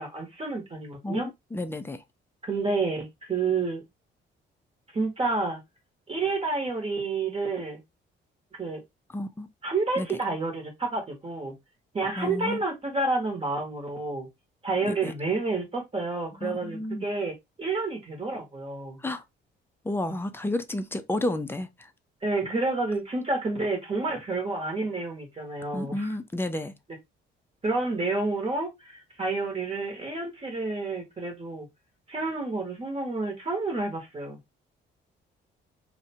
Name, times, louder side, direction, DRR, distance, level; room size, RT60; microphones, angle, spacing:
voice 1, 0.0-1.3 2.4-3.8 4.9-5.6 6.1-7.8 8.5-8.8 9.6-11.5 11.9-14.3 14.6-19.0 22.2-26.2 27.6-31.7 32.1-34.4, right 3 dB, 30° right, 0.9 m, -29 dB
voice 2, 1.0-2.0 9.1-9.5 10.0-10.2 12.2-12.6 14.8-15.1 16.4-17.0 19.0-19.2 19.8-21.9 25.7-26.7, left 1 dB, 10° left, 0.4 m, -31 dB
2.6 x 2.1 x 2.7 m
cardioid pair, 90°, 20 cm